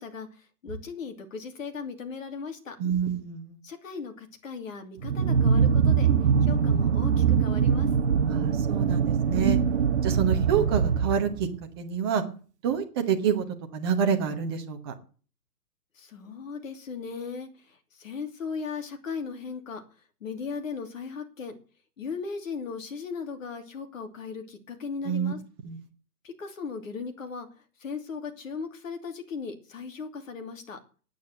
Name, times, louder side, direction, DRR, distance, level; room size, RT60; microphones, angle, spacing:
voice 1, 0.0-2.8 3.6-6.1 6.4-7.9 15.9-19.8 20.2-21.5 22.0-25.4 26.2-27.5 27.8-30.8, left 5 dB, 55° left, 6 dB, 2.9 m, -37 dB
voice 2, 2.8-3.6 8.3-9.6 10.0-11.5 11.8-12.2 12.6-13.4 13.7-14.9 25.0-25.3 25.6-25.8, right 7 dB, 15° right, 4 dB, 1.1 m, -27 dB
sound 1, 5.0-11.6, right 7 dB, 45° right, 0.9 m, -23 dB
9.4 x 9.2 x 8.1 m, 0.39 s
hypercardioid pair, 160°, 48 cm